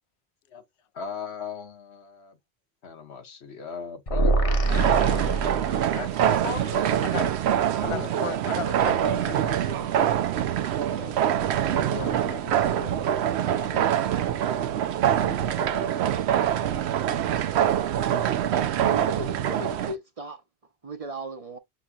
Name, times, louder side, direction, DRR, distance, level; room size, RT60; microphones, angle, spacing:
voice 1, 0.9-2.4 2.8-5.3 6.6-7.3 7.8-8.4 10.0-10.2 11.9-12.4 15.3-16.1, left 6 dB, 80° left, 1.4 m, -39 dB
sound 1, 4.1-6.2, right 2 dB, 35° left, 1.0 m, -24 dB
sound 2, 4.7-20.0, right 10 dB, 85° right, 0.8 m, -25 dB
voice 2, 5.9-7.3 7.8-9.9 11.0-11.2 11.6-13.2 13.5-13.9, left 7 dB, 50° left, 0.4 m, -37 dB
voice 3, 18.8-20.4 20.8-21.6, right 2 dB, 40° right, 0.6 m, -36 dB
6.8 x 2.8 x 2.3 m
omnidirectional pair, 1.1 m